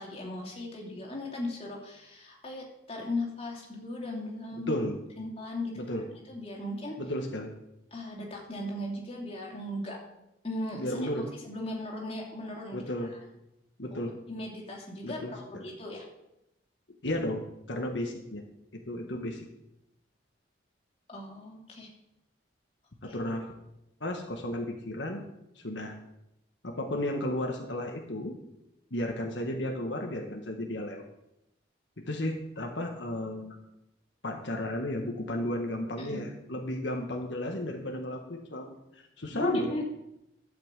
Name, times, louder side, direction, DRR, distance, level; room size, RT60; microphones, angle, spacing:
voice 1, 0.0-4.7 5.2-5.8 6.1-6.9 7.9-10.0 10.4-12.8 13.9-14.0 14.3-16.1 21.1-21.9 23.1-23.2 36.0-36.2 39.3-39.8, left 1 dB, 30° left, -1 dB, 2.7 m, -37 dB
voice 2, 4.5-4.9 5.7-6.0 7.0-7.5 10.7-11.3 12.7-13.1 13.8-14.1 15.0-15.6 17.0-17.4 17.7-18.4 18.7-19.4 23.0-23.4 24.0-25.2 25.5-25.9 26.6-28.3 28.9-31.0 32.0-33.6 34.2-39.7, left 1 dB, 75° left, 2 dB, 1.5 m, -33 dB
12.0 x 5.9 x 8.2 m, 0.86 s
head